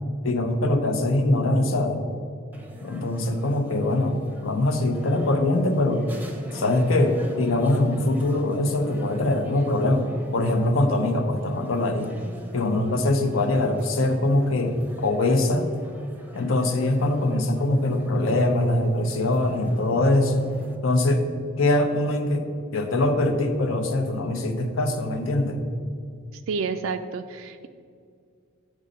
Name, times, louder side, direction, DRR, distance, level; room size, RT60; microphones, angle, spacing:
voice 1, 0.2-2.1 2.8-6.1 6.5-10.1 10.3-12.1 12.5-15.7 16.3-20.5 20.8-21.2 21.6-22.4 22.7-25.6, left 2 dB, 80° left, 6 dB, 0.7 m, -23 dB
sound 1, 2.5-20.8, right 1 dB, 10° right, 0.6 m, -44 dB
voice 2, 26.3-27.7, right 5 dB, 75° right, 8 dB, 0.3 m, -30 dB
6.3 x 5.3 x 5.2 m, 2.3 s
head